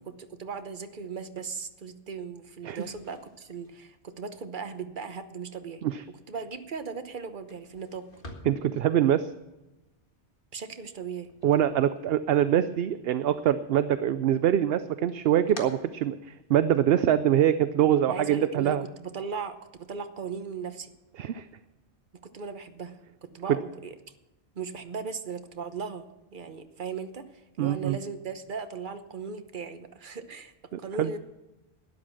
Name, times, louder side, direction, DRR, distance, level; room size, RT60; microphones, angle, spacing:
voice 1, 0.0-5.8 6.3-8.1 10.5-11.3 18.1-20.9 22.2-23.9 24.6-26.0 26.3-27.2 27.6-30.5 30.8-31.2, right 5 dB, 45° right, 9 dB, 1.1 m, -37 dB
sound 1, 2.7-12.6 12.9-13.7 14.1-16.7, left 2 dB, 50° left, 1.9 m, -51 dB
voice 2, 8.5-9.3 11.4-18.8 21.2-21.5 23.5-23.6 27.6-28.0 30.7-31.1, right 10 dB, 65° right, 12 dB, 0.7 m, -24 dB
12.5 x 11.0 x 6.0 m, 1.0 s
omnidirectional pair, 1.2 m